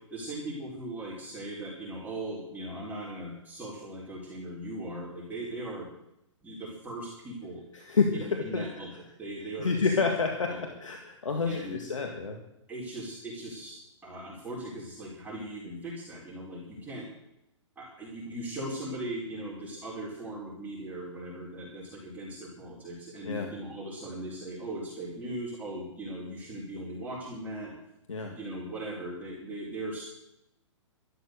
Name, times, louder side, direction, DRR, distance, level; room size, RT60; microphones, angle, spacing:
voice 1, 0.1-5.9 6.4-7.6 8.1-8.9 9.2-10.0 10.5-10.7 11.4-11.8 12.7-13.8 14.0-17.1 17.8-27.7 28.2-30.0, right 1 dB, 10° right, -6 dB, 4.2 m, -39 dB
voice 2, 7.7-8.6 9.6-12.4 23.2-23.5 28.1-28.3, left 4 dB, 85° left, 3 dB, 2.0 m, -29 dB
12.5 x 12.5 x 6.6 m, 0.85 s
hypercardioid pair, 125°, 16 cm